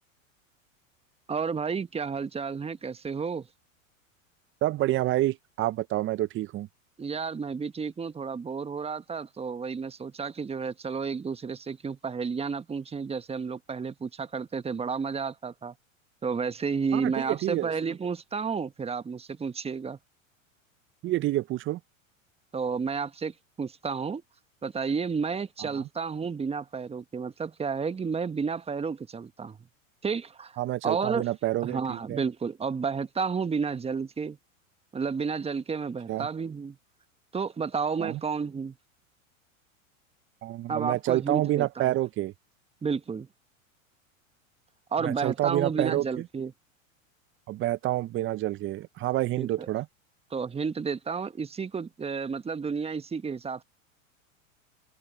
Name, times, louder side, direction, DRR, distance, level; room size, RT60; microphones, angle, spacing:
voice 1, 1.3-3.5 7.0-15.7 16.2-20.0 22.5-24.2 24.6-29.6 30.0-31.2 31.6-34.4 34.9-36.8 37.3-38.8 40.7-41.9 42.8-43.3 44.9-46.5 49.4-49.7 50.3-53.6, right 5 dB, 15° right, 1.2 m, -31 dB
voice 2, 4.6-6.7 16.9-17.7 21.0-21.8 25.7-25.9 30.6-32.2 36.1-36.3 38.0-38.2 40.4-42.3 45.0-46.2 47.5-49.9, right 15 dB, 30° right, 0.7 m, -28 dB
open air
hypercardioid pair, 100°, 40 cm